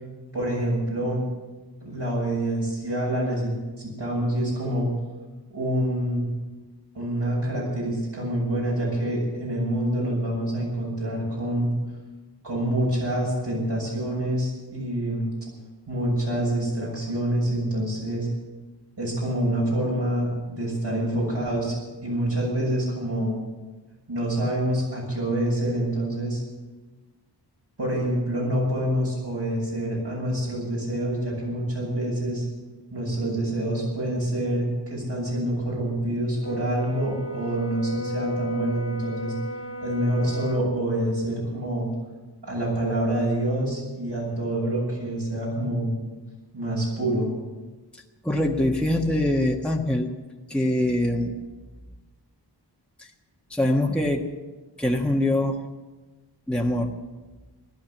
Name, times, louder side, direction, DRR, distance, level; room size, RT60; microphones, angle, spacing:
voice 1, 0.3-1.3 1.8-4.9 5.5-6.3 6.9-11.7 12.4-15.3 15.9-18.3 19.0-21.8 22.0-23.4 24.1-26.4 27.8-32.5 32.9-39.3 39.8-41.9 42.4-45.9 46.5-47.3, right 1 dB, 70° right, -5 dB, 6.9 m, -26 dB
Brass instrument, 36.4-40.7, left 1 dB, 30° left, 1.9 m, -34 dB
voice 2, 48.2-50.1 50.5-51.4 53.0-53.1 53.5-54.2 54.8-55.6 56.5-56.9, left 1 dB, ahead, 0 dB, 1.4 m, -23 dB
15.0 x 11.5 x 7.3 m, 1.2 s
wide cardioid pair, 50°, 43 cm